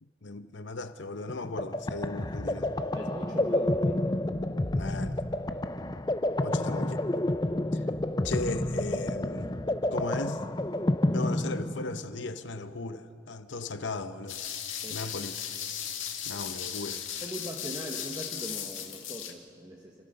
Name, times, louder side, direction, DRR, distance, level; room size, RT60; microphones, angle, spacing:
voice 1, 0.0-2.7 4.7-5.2 6.4-7.2 7.7-7.9 8.2-9.5 9.9-10.4 11.1-14.4 14.9-15.3 16.3-17.0, left 3 dB, 65° left, 0.7 m, -37 dB
sound 1, 1.3-12.1, left 1 dB, 20° left, 0.5 m, -29 dB
voice 2, 2.9-4.1 6.4-6.6 14.8-15.3 17.2-20.0, right 1 dB, 20° right, 1.2 m, -41 dB
sound 2, 14.3-19.3, left 9 dB, 80° left, 2.2 m, -37 dB
29.5 x 13.5 x 6.6 m
head